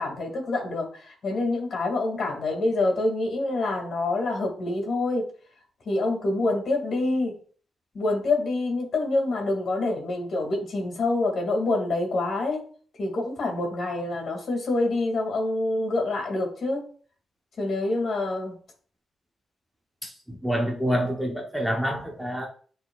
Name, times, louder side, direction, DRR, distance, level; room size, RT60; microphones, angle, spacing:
voice 1, 0.0-5.3 5.9-7.4 7.9-12.6 13.0-16.9 17.6-18.6, left 2 dB, 50° left, 1 dB, 2.2 m, -26 dB
voice 2, 20.4-22.5, equal, 5° right, 0 dB, 0.9 m, -27 dB
10.0 x 4.0 x 2.3 m, 0.43 s
wide cardioid pair, 165°, 0 cm